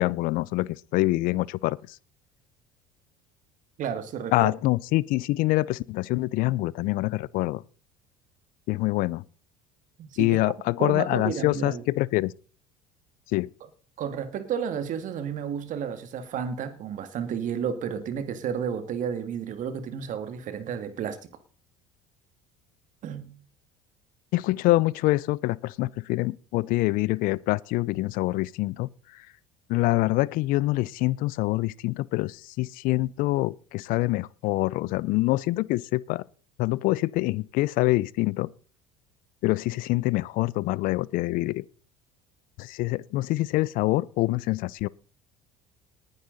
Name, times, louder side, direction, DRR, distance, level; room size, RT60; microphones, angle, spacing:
voice 1, 0.0-2.0 4.3-7.6 8.7-9.2 10.2-12.3 13.3-13.5 24.3-29.3 29.7-36.2 36.6-38.5 39.4-41.7 42.6-44.9, left 19 dB, 60° left, 0.5 m, -25 dB
voice 2, 3.8-4.5 10.0-10.4 10.8-11.8 14.0-21.2 23.0-23.3, right 7 dB, 55° right, 2.2 m, -32 dB
19.0 x 10.5 x 4.1 m
hypercardioid pair, 75°, 16 cm